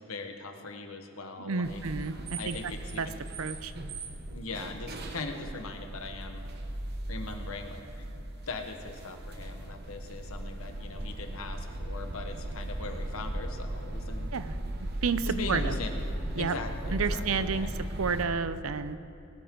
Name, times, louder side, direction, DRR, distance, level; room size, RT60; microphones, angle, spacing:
voice 1, 0.0-1.8 2.4-3.2 4.3-6.4 7.1-7.8 8.1-14.3 15.2-16.0 16.4-17.7, left 3 dB, 85° left, 5 dB, 1.3 m, -40 dB
voice 2, 1.4-3.1 3.4-3.7 14.3-14.6 15.0-15.8 16.4-16.6 16.9-17.7 18.0-19.0, right 5 dB, 80° right, 13 dB, 0.6 m, -31 dB
sound 1, 1.6-18.3, right 1 dB, 50° right, 1.0 m, -37 dB
20.0 x 12.5 x 3.8 m, 2.8 s
head